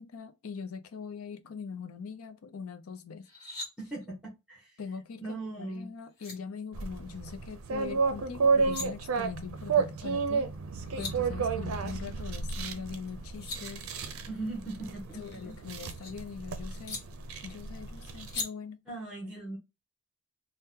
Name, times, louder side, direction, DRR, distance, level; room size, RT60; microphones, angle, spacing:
voice 1, 0.0-3.3 4.8-10.5 11.0-13.9 15.1-17.0 17.4-18.8, left 5 dB, 80° left, 0.5 m, -42 dB
sound 1, 3.2-3.7 5.7-5.8 6.2-6.4 8.4-8.9 10.5-10.6 10.8-11.1 13.1-13.6 15.1-16.1 16.9-17.0 18.3-18.5, left 3 dB, 50° left, 1.3 m, -39 dB
voice 2, 3.8-4.8 5.2-5.9 14.3-15.4 18.9-19.6, right 2 dB, 5° right, 0.9 m, -39 dB
sound 2, 6.7-18.4, right 5 dB, 80° right, 0.5 m, -32 dB
2.7 x 2.1 x 3.5 m
head